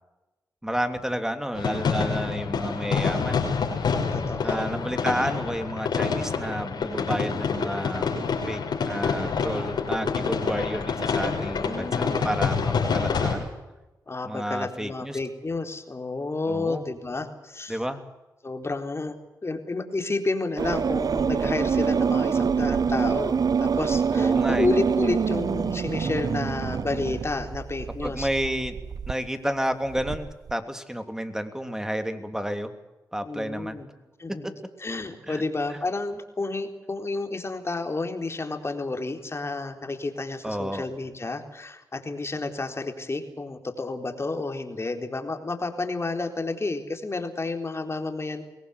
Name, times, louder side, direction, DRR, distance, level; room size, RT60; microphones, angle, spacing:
voice 1, 0.6-3.4 4.4-8.2 8.5-13.5 14.2-15.2 16.5-16.8 17.7-18.0 24.1-24.7 28.0-28.8 29.1-32.7 33.1-33.8 34.4-34.5 35.3-35.4 35.7-35.8 40.4-40.8, equal, 5° right, 8 dB, 3.1 m, -31 dB
sound 1, 1.5-13.3, left 5 dB, 80° left, 6.0 m, -27 dB
voice 2, 4.1-4.7 11.2-12.2 14.1-17.8 18.4-19.2 19.4-28.3 33.2-33.9 34.2-48.4, left 3 dB, 35° left, 5 dB, 3.9 m, -31 dB
sound 2, 20.6-29.1 29.9-30.5, right 6 dB, 60° right, 0.7 m, -26 dB
23.0 x 18.0 x 8.3 m, 1.0 s
cardioid pair, 55°, 7 cm